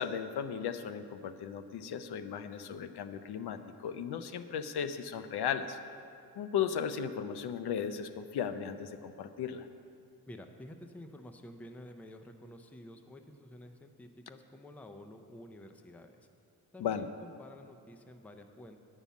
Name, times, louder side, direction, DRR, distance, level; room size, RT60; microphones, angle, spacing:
voice 1, 0.0-5.8 6.4-9.7 16.8-17.1, left 8 dB, 90° left, 9 dB, 0.7 m, -36 dB
voice 2, 10.3-16.3 16.7-18.8, left 1 dB, 5° left, 6 dB, 0.4 m, -50 dB
10.0 x 5.6 x 8.2 m, 2.5 s
wide cardioid pair, 175°, 38 cm